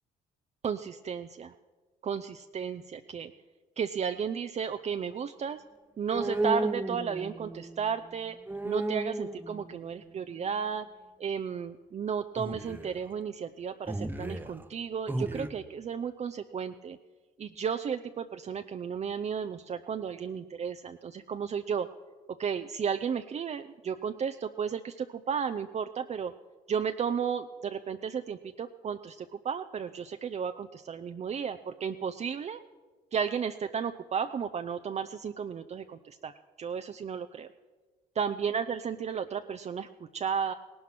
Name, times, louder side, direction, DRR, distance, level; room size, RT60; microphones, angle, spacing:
voice 1, 0.6-1.6 2.0-3.3 3.8-5.6 6.0-8.4 8.6-10.9 11.2-17.0 17.4-21.9 22.4-26.3 26.7-32.6 33.1-36.3 36.6-37.5 38.1-40.5, right 7 dB, 40° right, 8 dB, 0.6 m, -33 dB
sound 1, 6.1-8.1 8.5-10.1 12.4-13.0 13.9-14.7 15.1-15.5, right 2 dB, 10° right, 1.0 m, -34 dB
17.5 x 11.5 x 6.0 m, 1.4 s
supercardioid pair, 80°, 17 cm